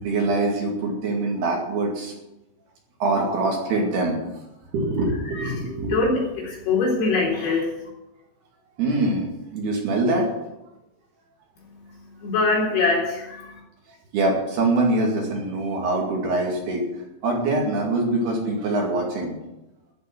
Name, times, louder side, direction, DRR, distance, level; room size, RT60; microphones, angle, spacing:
voice 1, 0.0-2.1 3.0-4.2 4.7-6.0 8.8-10.3 14.1-16.8 17.2-19.4, right 2 dB, 60° right, 0 dB, 4.0 m, -24 dB
voice 2, 5.9-7.7 12.2-13.5, left 3 dB, 60° left, -4 dB, 6.1 m, -23 dB
14.0 x 7.4 x 8.8 m, 0.94 s
omnidirectional pair, 5.5 m